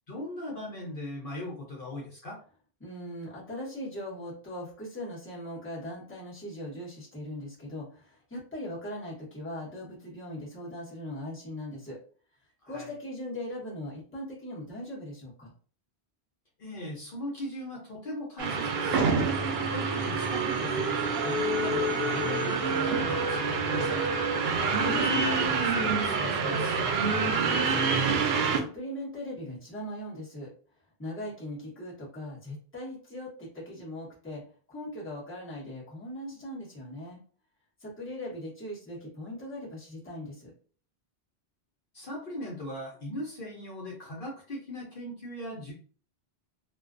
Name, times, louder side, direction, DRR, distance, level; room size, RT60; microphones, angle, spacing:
voice 1, 0.1-2.4 12.6-12.9 16.6-19.0 19.7-24.0 24.6-26.8 41.9-45.7, left 1 dB, 60° left, -3 dB, 0.9 m, -38 dB
voice 2, 2.8-12.0 12.7-15.5 19.2-19.5 26.8-30.5 31.0-34.4 34.7-37.2 37.8-40.5, left 1 dB, 15° left, -7 dB, 1.0 m, -40 dB
sound 1, 18.4-28.6, right 4 dB, 70° right, 0.8 m, -27 dB
2.4 x 2.2 x 2.4 m, 0.42 s
omnidirectional pair, 1.1 m